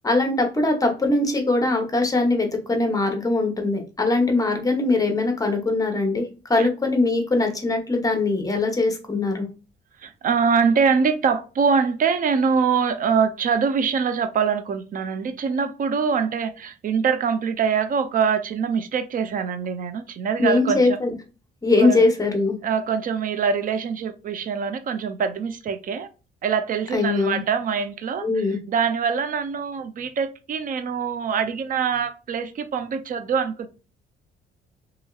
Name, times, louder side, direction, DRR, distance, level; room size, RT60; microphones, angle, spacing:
voice 1, 0.0-9.5 20.4-21.1 21.6-22.6 26.9-27.4 28.2-28.6, left 2 dB, 15° left, 0.8 m, -21 dB
voice 2, 10.0-21.0 21.8-22.1 22.6-26.1 26.4-33.7, right 6 dB, 45° right, 0.4 m, -24 dB
2.9 x 2.7 x 2.3 m
cardioid pair, 90°, 20 cm